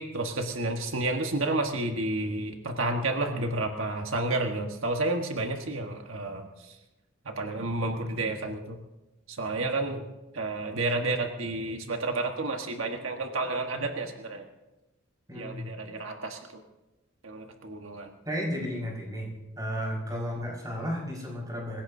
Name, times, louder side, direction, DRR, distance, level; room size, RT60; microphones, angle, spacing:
voice 1, 0.0-6.8 7.2-8.8 9.3-10.0 10.3-14.4 15.3-16.4 17.2-18.1, right 2 dB, 90° right, 3 dB, 1.4 m, -31 dB
voice 2, 15.3-15.7 18.3-19.3 19.6-21.8, equal, 20° right, -2 dB, 5.2 m, -33 dB
26.0 x 16.0 x 2.7 m, 1.0 s
head